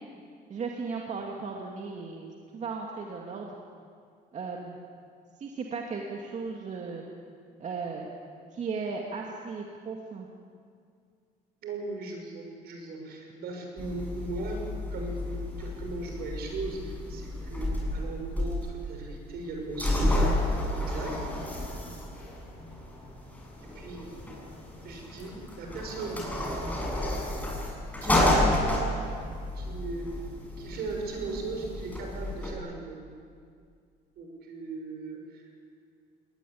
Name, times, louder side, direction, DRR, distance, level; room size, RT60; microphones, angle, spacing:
voice 1, 0.5-3.6 4.3-4.8 5.4-7.0 7.6-8.1 8.5-10.3, right 4 dB, 45° right, 0 dB, 2.3 m, -36 dB
voice 2, 11.6-14.6 14.9-20.3 20.8-21.1 23.7-24.1 24.8-26.2 28.0-28.4 29.5-30.1 30.6-33.0 34.2-35.5, right 3 dB, 70° right, 2 dB, 6.7 m, -38 dB
sound 1, 13.8-32.5, left 1 dB, 10° left, 6.8 m, -31 dB
20.5 x 19.5 x 8.7 m, 2.2 s
cardioid pair, 110°, 17 cm